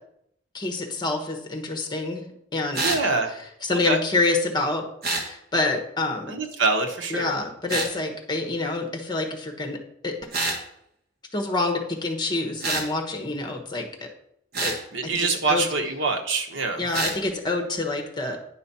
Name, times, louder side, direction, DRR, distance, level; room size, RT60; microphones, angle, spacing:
voice 1, 0.5-2.2 2.5-2.9 3.6-4.8 5.2-6.3 7.1-9.8 10.0-10.1 11.3-14.1 14.6-14.7 15.0-15.7 16.8-18.4, left 2 dB, 20° left, 3 dB, 1.2 m, -27 dB
sound 1, 2.7-3.0 5.0-5.3 7.7-7.9 10.3-10.6 12.6-12.9 14.5-14.8 16.9-17.2, right 2 dB, 50° right, 1.5 m, -26 dB
voice 2, 2.8-3.4 3.7-4.0 6.3-7.3 14.9-16.8, right 3 dB, 80° right, 4 dB, 1.2 m, -25 dB
10.0 x 5.3 x 4.2 m, 0.74 s
head